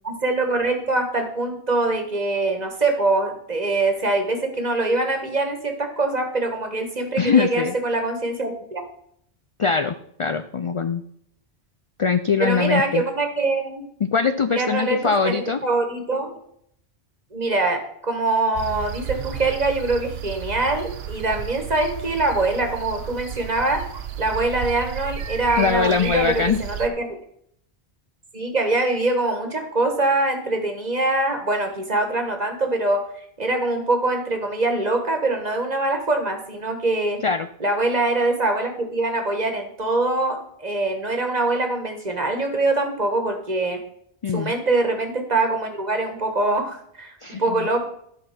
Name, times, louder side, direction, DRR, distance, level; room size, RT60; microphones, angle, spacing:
voice 1, 0.0-8.8 12.4-13.9 14.6-16.4 17.3-23.8 24.2-27.2 28.3-33.0 33.4-37.2 37.6-43.8 44.3-47.9, right 2 dB, 40° right, 4 dB, 1.7 m, -23 dB
voice 2, 7.2-7.8 9.6-11.0 12.0-13.0 14.0-15.6 25.6-26.6 37.2-37.5 44.2-44.5 47.2-47.7, left 5 dB, 50° left, 9 dB, 0.4 m, -22 dB
sound 1, 18.5-26.9, right 9 dB, 70° right, 0.9 m, -33 dB
12.5 x 4.6 x 6.0 m, 0.69 s
omnidirectional pair, 1.1 m